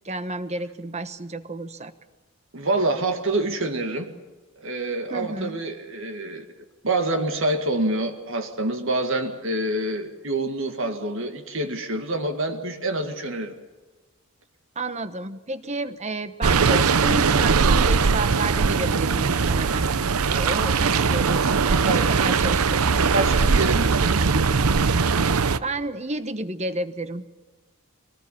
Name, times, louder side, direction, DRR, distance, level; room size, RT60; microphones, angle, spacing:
voice 1, 0.0-1.9 5.1-5.6 14.7-19.9 20.3-23.1 25.6-27.3, right 2 dB, 30° right, 11 dB, 1.1 m, -31 dB
voice 2, 2.5-4.1 4.6-6.5 6.8-13.6 21.8-22.1 23.1-24.3, right 2 dB, 60° right, 5 dB, 2.0 m, -26 dB
sound 1, 16.4-25.6, right 5 dB, 80° right, 0.7 m, -20 dB
23.5 x 18.5 x 8.6 m, 1.3 s
head